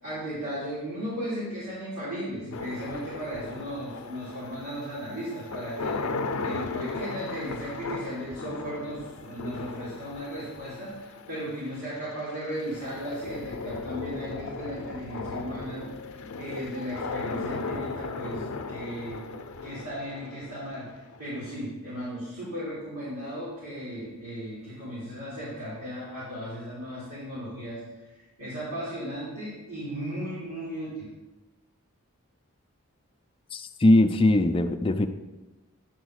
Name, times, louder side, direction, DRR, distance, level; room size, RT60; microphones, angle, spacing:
voice 1, 0.0-6.0 6.4-19.2 19.6-27.8 28.1-31.1, equal, 75° right, -10 dB, 3.2 m, -36 dB
sound 1, 2.5-21.5, left 3 dB, 85° left, 0.5 m, -37 dB
voice 2, 33.5-35.1, left 1 dB, 25° left, 7 dB, 0.4 m, -21 dB
9.9 x 4.0 x 6.4 m, 1.1 s
head